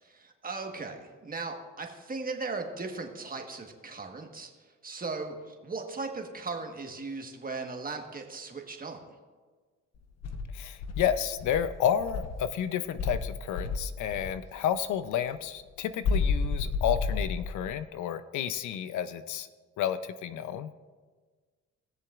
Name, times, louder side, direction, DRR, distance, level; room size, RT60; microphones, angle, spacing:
voice 1, 0.0-9.0, right 3 dB, 30° right, 3 dB, 1.4 m, -38 dB
Insect, 10.2-12.5 13.0-14.4 16.0-17.7, left 4 dB, 55° left, 1.0 m, -31 dB
voice 2, 10.5-19.5 19.8-20.7, left 9 dB, 75° left, 12 dB, 0.6 m, -31 dB
19.0 x 6.8 x 2.4 m, 1.4 s
cardioid pair, 90°, 30 cm